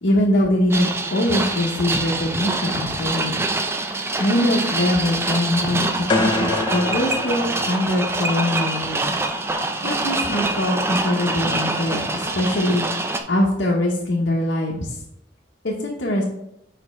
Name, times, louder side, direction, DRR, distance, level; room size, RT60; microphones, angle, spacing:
voice 1, 0.0-3.4 4.2-9.2 9.8-12.9 13.3-15.0 15.6-16.2, left 1 dB, 80° left, -3 dB, 1.0 m, -22 dB
sound 1, 0.7-13.2, right 2 dB, 15° right, 0.4 m, -25 dB
sound 2, 6.1-8.2, left 3 dB, 25° left, 0.8 m, -25 dB
5.2 x 5.0 x 4.3 m, 0.80 s
head